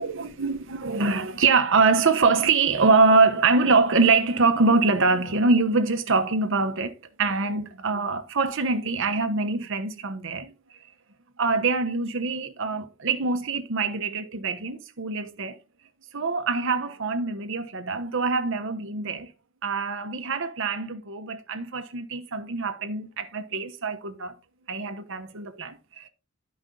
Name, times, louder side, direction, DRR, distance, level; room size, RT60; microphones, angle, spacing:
voice 1, 0.0-10.6 11.4-15.6 16.1-19.3 19.6-24.4 24.7-26.1, right 4 dB, 65° right, 1.1 m, -24 dB
11.0 x 5.2 x 3.8 m
head